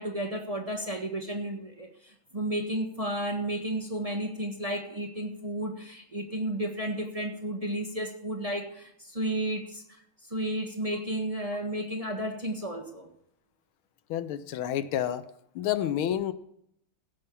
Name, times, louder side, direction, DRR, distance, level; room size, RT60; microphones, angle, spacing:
voice 1, 0.0-10.0 10.3-13.1, right 1 dB, 20° right, 1 dB, 1.3 m, -32 dB
voice 2, 14.1-15.2 15.5-16.3, left 11 dB, 80° left, 12 dB, 1.6 m, -29 dB
16.0 x 5.7 x 6.9 m, 0.73 s
omnidirectional pair, 2.3 m